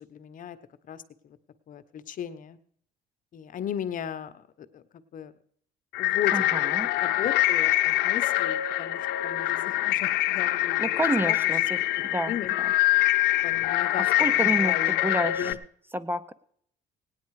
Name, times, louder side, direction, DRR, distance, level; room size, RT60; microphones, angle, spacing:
voice 1, 0.1-0.6 0.9-1.4 1.7-2.6 3.3-4.5 4.7-5.3 6.0-6.5 7.0-11.0 11.3-11.5 12.3-12.5 13.3-15.6, left 9 dB, 50° left, 11 dB, 0.9 m, -36 dB
sound 1, 5.9-15.5, left 15 dB, 80° left, 0.7 m, -24 dB
voice 2, 6.3-6.9 10.8-11.6 12.1-12.3 12.6-12.7 14.2-14.7 15.0-15.5 15.9-16.3, right 1 dB, 10° right, 15 dB, 0.6 m, -29 dB
18.0 x 9.4 x 4.8 m, 0.64 s
cardioid pair, 110°, 17 cm